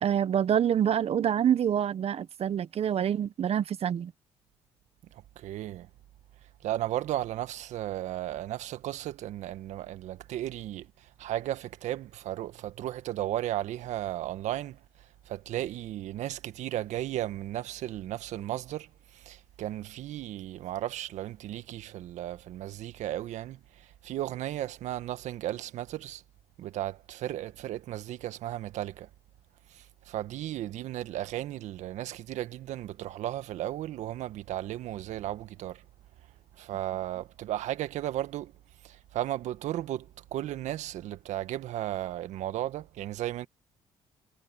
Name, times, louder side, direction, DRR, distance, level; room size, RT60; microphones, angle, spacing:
voice 1, 0.0-4.1, right 9 dB, 55° right, 1.4 m, -26 dB
voice 2, 5.1-5.9 6.6-14.8 15.3-26.2 26.6-29.1 29.7-35.8 36.6-38.5 38.8-43.5, right 13 dB, 70° right, 1.7 m, -35 dB
hypercardioid pair, 60°, 13 cm